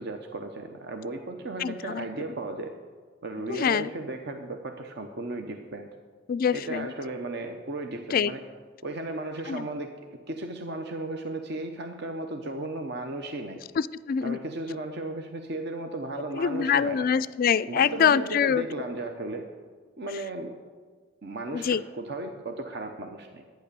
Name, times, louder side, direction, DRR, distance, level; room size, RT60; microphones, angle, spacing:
voice 1, 0.0-2.7 3.2-5.9 6.5-8.4 8.8-9.9 10.3-13.6 14.2-17.1 17.7-19.5 20.0-20.5 21.2-23.4, right 2 dB, 55° right, 5 dB, 0.8 m, -35 dB
voice 2, 1.6-2.1 3.5-3.9 6.3-6.9 8.1-8.3 9.5-9.7 13.8-14.4 16.3-18.6 21.5-21.8, left 7 dB, 45° left, 17 dB, 0.3 m, -25 dB
11.5 x 9.2 x 6.8 m, 1.5 s
head